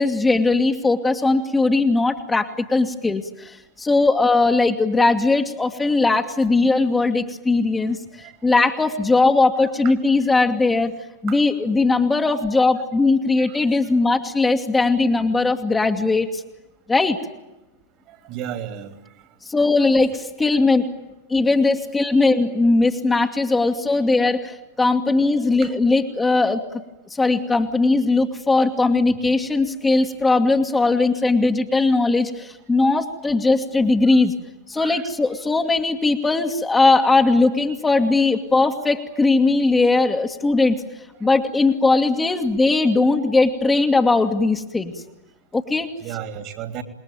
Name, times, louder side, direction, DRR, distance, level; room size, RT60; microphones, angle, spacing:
voice 1, 0.0-8.0 8.4-10.9 11.2-16.4 16.9-17.2 19.5-20.9 21.3-26.6 27.2-34.3 34.7-40.8 41.2-44.9 45.5-45.9, left 3 dB, 10° left, 3 dB, 2.0 m, -19 dB
voice 2, 13.4-13.7 18.1-19.0 25.6-25.7 34.7-35.1 41.2-41.3 42.3-42.4 46.0-46.8, right 10 dB, 40° right, 8 dB, 3.2 m, -34 dB
28.0 x 21.0 x 9.1 m, 0.99 s
figure-of-eight pair, 90°, 0 cm